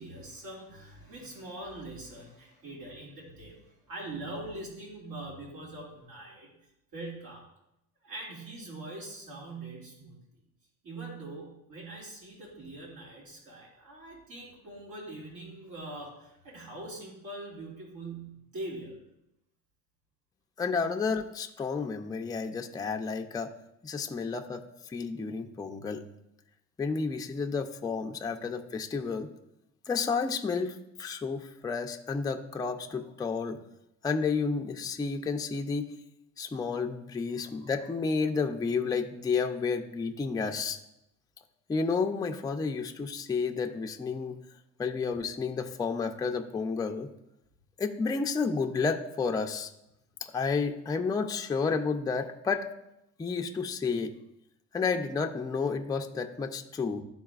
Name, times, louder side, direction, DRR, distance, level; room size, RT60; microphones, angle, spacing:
voice 1, 0.0-6.5 6.9-7.4 8.0-10.2 10.8-19.0, right 2 dB, 75° right, -4 dB, 2.4 m, -43 dB
voice 2, 20.6-23.5 23.8-26.0 26.8-29.3 29.9-33.6 34.0-35.9 36.4-40.8 41.7-44.4 44.8-47.1 47.8-49.7 50.2-52.7 53.2-54.1 54.7-57.0, left 5 dB, 10° left, 4 dB, 0.4 m, -31 dB
12.0 x 4.0 x 2.4 m, 0.85 s
cardioid pair, 115°, 31 cm